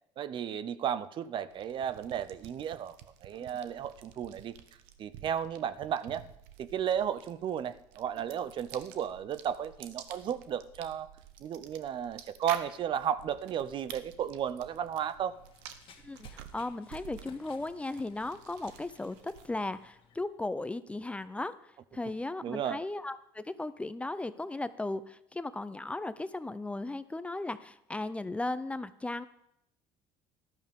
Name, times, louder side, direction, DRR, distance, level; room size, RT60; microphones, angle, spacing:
voice 1, 0.2-3.0 3.2-4.5 5.0-6.3 6.6-11.1 11.4-15.4 22.4-22.8, right 9 dB, 50° right, 15 dB, 0.6 m, -34 dB
sound 1, 1.5-19.7, right 10 dB, 85° right, 0.9 m, -51 dB
Run, 14.7-20.2, left 7 dB, 55° left, 1.7 m, -59 dB
voice 2, 16.0-29.2, left 2 dB, 10° left, 14 dB, 0.5 m, -36 dB
13.5 x 12.0 x 3.6 m, 0.77 s
supercardioid pair, 100°, 11 cm